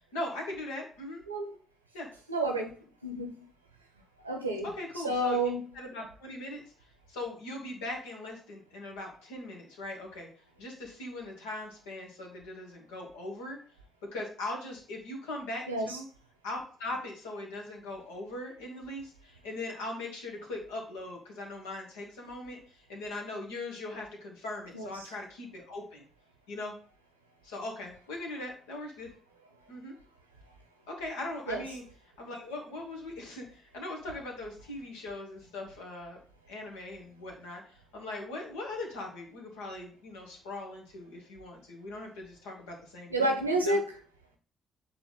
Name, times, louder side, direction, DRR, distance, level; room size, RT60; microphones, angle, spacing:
voice 1, 0.1-1.2 1.9-2.1 4.6-5.4 5.7-6.6 7.1-10.3 10.6-13.6 14.1-16.1 16.4-26.0 26.5-26.7 27.4-29.1 29.7-29.9 30.9-31.8 32.2-36.2 36.5-43.8, left 2 dB, 75° left, 0 dB, 1.6 m, -40 dB
voice 2, 2.3-2.7 3.0-3.3 4.2-4.7 5.0-5.6 15.7-15.9 24.7-24.9 31.5-31.6 43.1-43.8, right 1 dB, 90° right, 2 dB, 0.8 m, -29 dB
7.7 x 3.3 x 4.0 m, 0.41 s
figure-of-eight pair, 40°, 0 cm